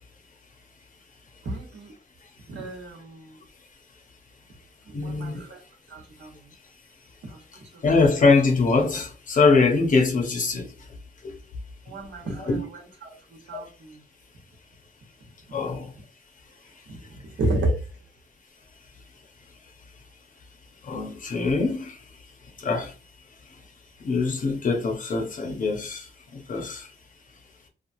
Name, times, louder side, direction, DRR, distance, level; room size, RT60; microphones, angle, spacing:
voice 1, 1.4-1.9 2.5-3.4 4.9-5.6 5.9-6.5 7.3-7.4 7.7-7.8 11.9-14.0 15.5-15.7 16.9-17.8, right 2 dB, 80° right, 1.1 m, -32 dB
voice 2, 4.9-5.4 7.8-10.7 11.2-11.3 12.3-12.6 15.5-15.9 20.9-22.0 22.6-22.9 24.0-26.1 26.3-26.9, left 4 dB, 45° left, 0.7 m, -23 dB
2.9 x 2.3 x 2.6 m
wide cardioid pair, 175°, 18 cm